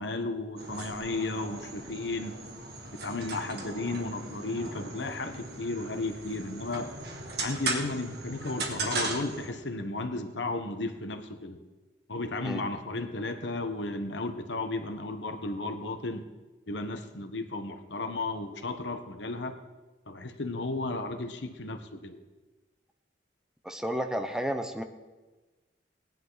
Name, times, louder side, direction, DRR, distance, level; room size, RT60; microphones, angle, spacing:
voice 1, 0.0-2.3 2.9-6.9 7.4-11.6 12.1-16.3 16.7-19.6 20.1-22.2, left 2 dB, 80° left, 7 dB, 1.3 m, -34 dB
sound 1, 0.6-9.5, right 3 dB, 60° right, 2.0 m, -38 dB
voice 2, 23.6-24.8, equal, 5° right, 6 dB, 0.8 m, -32 dB
18.5 x 10.5 x 4.1 m, 1.2 s
head